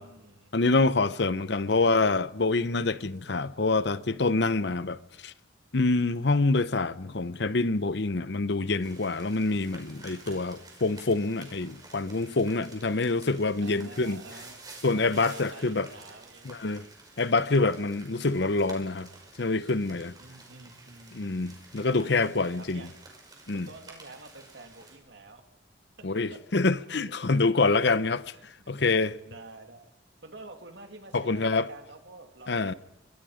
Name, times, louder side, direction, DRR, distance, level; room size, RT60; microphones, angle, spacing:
voice 1, 0.0-0.5 1.4-2.1 13.6-14.7 14.9-16.6 20.2-21.4 22.3-22.9 23.5-25.4 26.0-26.4 26.9-27.4 27.7-27.8 28.3-29.9 30.2-32.8, right 2 dB, 65° right, 2.8 m, -49 dB
voice 2, 0.5-5.3 5.7-14.2 14.8-15.9 16.4-16.8 17.2-19.1 19.4-20.1 21.1-22.8 23.5-23.7 26.0-28.2 28.7-29.2 31.1-31.7 32.5-32.7, left 3 dB, 60° left, 0.8 m, -26 dB
sound 1, 8.8-25.0, right 3 dB, 20° right, 5.1 m, -51 dB
26.0 x 23.5 x 5.1 m
head